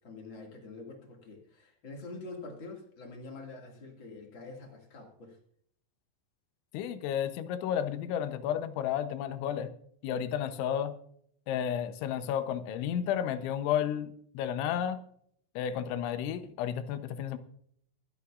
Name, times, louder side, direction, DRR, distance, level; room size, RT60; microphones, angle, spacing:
voice 1, 0.0-5.4, left 3 dB, 50° left, 1 dB, 1.5 m, -46 dB
voice 2, 6.7-9.7 10.0-10.9 11.5-15.0 15.6-17.4, left 9 dB, 80° left, 10 dB, 3.0 m, -32 dB
25.0 x 9.8 x 2.5 m, 0.66 s
omnidirectional pair, 5.7 m